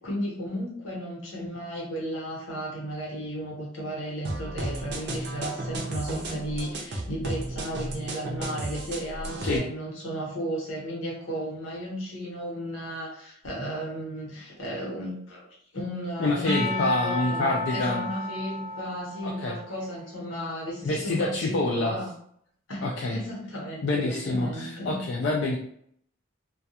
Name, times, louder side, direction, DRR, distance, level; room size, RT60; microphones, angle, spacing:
voice 1, 0.0-15.5 15.7-22.1 22.7-25.0, equal, 80° left, -3 dB, 1.0 m, -34 dB
sound 1, 4.2-9.6, right 1 dB, 55° right, 0.5 m, -34 dB
voice 2, 16.2-18.0 19.2-19.6 20.8-22.0 22.8-23.2 23.8-25.6, left 2 dB, 60° left, -1 dB, 0.3 m, -27 dB
Percussion / Church bell, 16.5-20.1, left 2 dB, 15° right, 0.8 m, -34 dB
2.3 x 2.2 x 2.7 m, 0.66 s
head